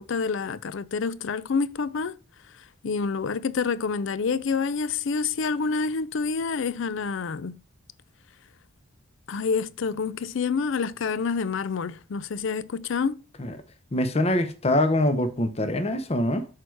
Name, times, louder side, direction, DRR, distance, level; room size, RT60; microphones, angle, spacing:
voice 1, 0.0-2.2 2.8-7.6 9.3-13.2, left 5 dB, 65° left, 0.4 m, -27 dB
voice 2, 13.9-16.5, left 1 dB, 30° left, 0.7 m, -24 dB
6.6 x 4.6 x 4.6 m
head